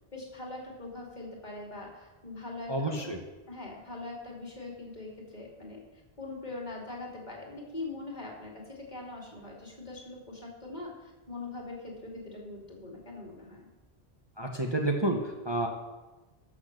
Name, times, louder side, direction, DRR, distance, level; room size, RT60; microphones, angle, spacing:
voice 1, 0.1-3.1 3.5-5.8 6.2-13.7, left 2 dB, 45° left, -1 dB, 2.7 m, -42 dB
voice 2, 2.7-3.2 14.4-15.7, right 2 dB, 25° right, 2 dB, 1.0 m, -29 dB
12.5 x 6.3 x 6.7 m, 1.1 s
omnidirectional pair, 1.0 m